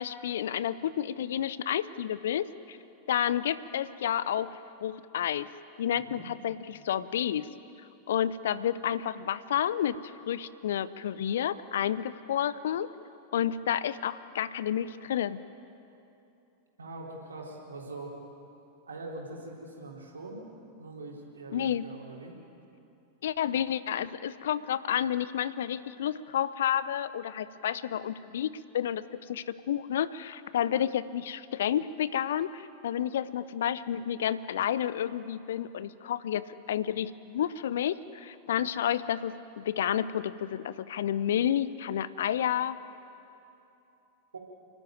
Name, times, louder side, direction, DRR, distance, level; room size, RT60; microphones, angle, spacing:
voice 1, 0.0-2.8 3.1-5.5 5.8-7.5 8.1-12.9 13.3-15.4 21.5-21.9 23.2-42.8, left 10 dB, 60° left, 16 dB, 0.7 m, -30 dB
voice 2, 16.8-18.2 18.9-20.5 20.8-22.4 44.3-44.4, right 2 dB, 75° right, -2 dB, 4.0 m, -42 dB
29.0 x 12.5 x 9.2 m, 2.9 s
figure-of-eight pair, 90°, 0 cm